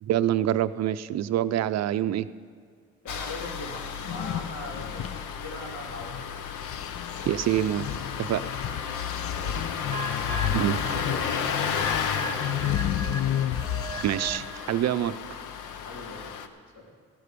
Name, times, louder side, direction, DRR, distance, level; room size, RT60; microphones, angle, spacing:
voice 1, 0.0-2.3 7.3-7.9 8.2-8.4 10.5-10.8 14.0-15.4, right 12 dB, 60° right, 14 dB, 0.5 m, -26 dB
voice 2, 3.0-6.6 9.2-13.1 15.8-16.3 16.7-16.9, left 2 dB, 65° left, -1 dB, 3.1 m, -41 dB
Engine starting, 3.1-16.5, left 7 dB, 85° left, 0.9 m, -33 dB
sound 1, 3.9-6.3 6.6-14.5, left 10 dB, 50° left, 0.5 m, -32 dB
sound 2, 9.9-14.6, right 1 dB, 25° right, 0.8 m, -38 dB
14.5 x 11.0 x 5.2 m, 2.1 s
cardioid pair, 90°, 30 cm